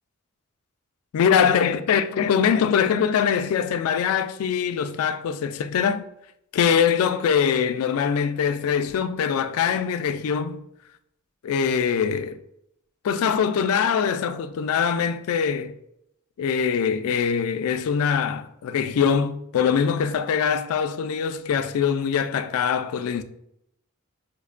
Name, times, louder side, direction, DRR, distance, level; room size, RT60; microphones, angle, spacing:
voice 1, 1.1-6.0 6.5-10.6 11.4-12.4 13.0-15.7 16.4-23.2, left 7 dB, 80° left, 0.3 m, -23 dB
5.0 x 2.1 x 2.4 m
head